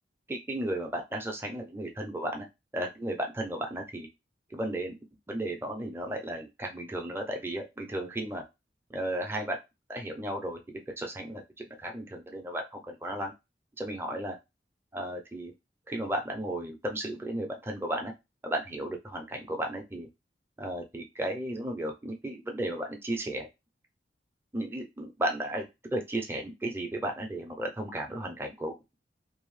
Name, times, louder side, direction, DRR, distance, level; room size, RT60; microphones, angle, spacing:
voice 1, 0.3-2.5 2.7-4.1 4.5-5.0 5.3-8.4 8.9-9.6 9.9-10.6 11.0-13.3 13.8-14.3 14.9-15.5 15.9-18.1 18.4-20.1 20.6-23.5 24.5-25.7 25.9-29.0, right 1 dB, 15° right, 2 dB, 0.4 m, -34 dB
2.6 x 2.0 x 3.1 m, 0.23 s
head